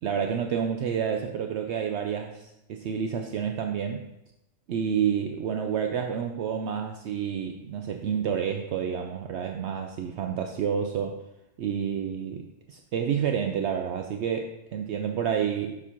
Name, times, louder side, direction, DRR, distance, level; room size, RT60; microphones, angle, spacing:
voice 1, 0.0-4.0 4.7-11.2 11.6-15.8, right 7 dB, 65° right, 4 dB, 0.8 m, -29 dB
7.1 x 4.4 x 5.8 m, 0.90 s
omnidirectional pair, 1.3 m